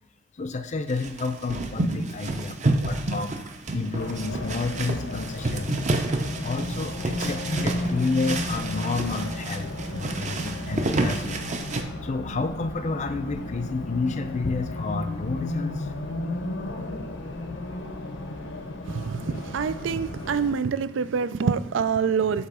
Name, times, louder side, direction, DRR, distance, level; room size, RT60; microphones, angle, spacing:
voice 1, 0.4-2.6 2.8-3.4 3.7-6.0 6.4-11.5 12.0-15.9, left 3 dB, 40° left, 9 dB, 0.5 m, -30 dB
sound 1, 0.9-11.8, right 2 dB, 40° right, 0.7 m, -29 dB
Race car auto racing, 3.9-20.5, left 2 dB, 85° left, 1.0 m, -34 dB
voice 2, 18.9-22.5, right 6 dB, 80° right, 14 dB, 0.4 m, -26 dB
8.2 x 3.0 x 6.0 m, 0.87 s
head